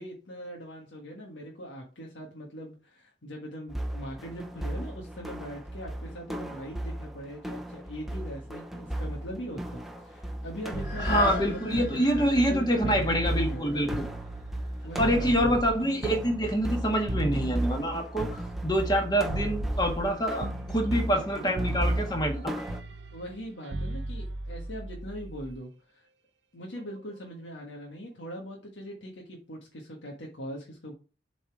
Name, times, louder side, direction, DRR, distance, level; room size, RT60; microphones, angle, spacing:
voice 1, 0.0-14.0 14.8-15.6 23.1-26.1 26.5-30.9, equal, 85° left, -1 dB, 1.6 m, -41 dB
sound 1, 3.7-22.8, right 1 dB, ahead, 0.7 m, -36 dB
sound 2, 10.7-16.4 17.0-17.1, left 4 dB, 65° left, 2.8 m, -41 dB
sound 3, 10.7-14.7 15.0-19.0 19.3-20.1 20.4-21.3 21.6-25.6 26.8-27.0, right 1 dB, 75° right, 0.8 m, -36 dB
voice 2, 11.0-14.1 15.0-22.6, equal, 25° left, 3 dB, 1.6 m, -26 dB
7.2 x 4.2 x 4.8 m, 0.34 s
head